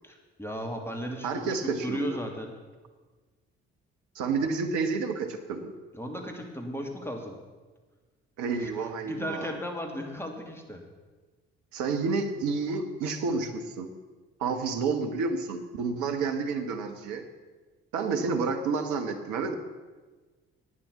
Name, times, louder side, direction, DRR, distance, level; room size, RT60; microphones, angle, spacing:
voice 1, 0.0-1.4 1.8-2.5 5.9-7.4 8.6-8.7 9.0-10.8, equal, 10° left, 2 dB, 2.7 m, -35 dB
voice 2, 1.2-2.2 4.1-5.7 8.4-9.6 11.7-13.9 14.4-17.2 17.9-19.5, right 4 dB, 65° right, 6 dB, 1.4 m, -30 dB
11.5 x 9.1 x 7.2 m, 1.3 s
figure-of-eight pair, 45°, 31 cm